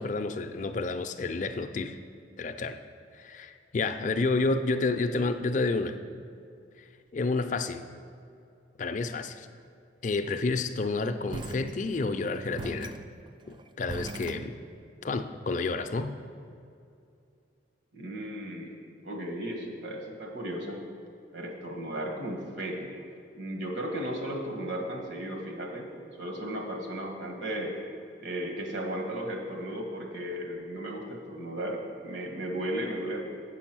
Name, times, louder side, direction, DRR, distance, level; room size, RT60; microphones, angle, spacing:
voice 1, 0.0-2.0 2.4-2.8 3.2-6.0 7.1-7.8 8.8-9.5 10.0-12.9 13.5-14.5 15.0-16.1, left 3 dB, 45° left, 8 dB, 0.4 m, -30 dB
sound 1, 11.3-12.2 12.6-14.9, right 3 dB, 25° right, 0.3 m, -41 dB
voice 2, 17.9-20.8 21.3-22.9 23.3-25.9 26.2-27.7 28.2-33.2, right 1 dB, 75° right, 1 dB, 1.5 m, -35 dB
8.3 x 6.2 x 6.0 m, 2.5 s
head